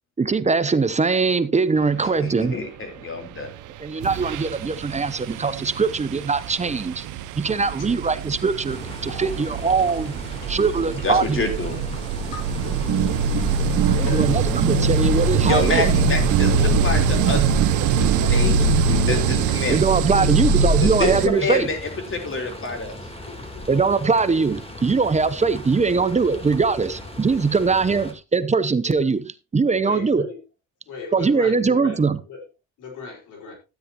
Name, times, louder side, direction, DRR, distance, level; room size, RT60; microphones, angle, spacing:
voice 1, 0.2-2.6 3.8-7.0 7.4-8.8 9.0-10.1 10.5-11.5 13.8-15.9 19.7-21.7 23.7-30.2 31.1-32.2, right 4 dB, 25° right, 0.8 m, -21 dB
voice 2, 2.0-3.5 11.0-11.8 15.5-17.4 18.0-19.8 20.8-21.8 22.1-23.0, left 3 dB, 45° left, 3.9 m, -27 dB
sound 1, 3.5-3.7 4.0-21.3, right 4 dB, 85° right, 0.8 m, -23 dB
sound 2, 8.7-28.1, left 1 dB, 20° left, 3.3 m, -38 dB
sound 3, 12.7-19.5, right 8 dB, 50° right, 1.5 m, -27 dB
voice 3, 13.8-14.3 16.0-16.1 17.4-17.6 23.3-23.7 29.8-30.4 30.9-32.0 32.3-32.4 32.8-33.5, left 3 dB, 90° left, 4.7 m, -37 dB
13.0 x 9.3 x 2.9 m
cardioid pair, 90°, 30 cm